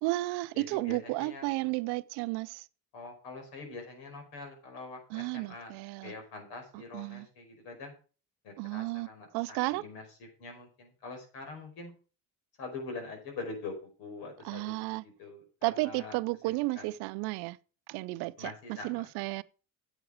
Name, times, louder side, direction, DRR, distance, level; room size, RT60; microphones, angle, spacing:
voice 1, 0.0-2.6 5.1-6.1 6.9-7.3 8.6-9.1 9.3-9.8 14.4-15.0 15.6-17.6 17.9-18.5 18.8-19.4, right 21 dB, 85° right, 0.6 m, -33 dB
voice 2, 0.5-1.7 2.9-5.7 6.0-7.9 8.4-11.9 12.6-16.2 16.4-16.9 18.4-19.1, left 3 dB, 85° left, 5.1 m, -44 dB
9.7 x 8.2 x 4.9 m
supercardioid pair, 90°, 38 cm